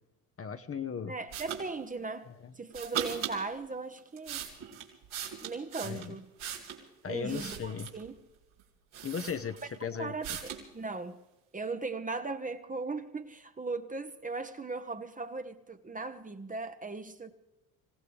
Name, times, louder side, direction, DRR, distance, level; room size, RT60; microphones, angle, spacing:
voice 1, 0.4-1.1 2.4-2.5 5.8-6.2 7.0-7.9 9.0-10.1, left 7 dB, 30° left, 1.1 m, -36 dB
voice 2, 1.0-2.3 2.6-4.4 5.4-6.3 7.1-8.1 9.6-11.2 11.5-17.3, right 3 dB, 20° right, 1.2 m, -38 dB
sound 1, 1.3-1.6 2.7-3.4 4.0-6.8 7.3-8.1 8.6-8.7 8.9-9.8 10.2-10.7, right 9 dB, 75° right, 3.9 m, -39 dB
26.0 x 16.0 x 3.4 m
supercardioid pair, 80°, 43 cm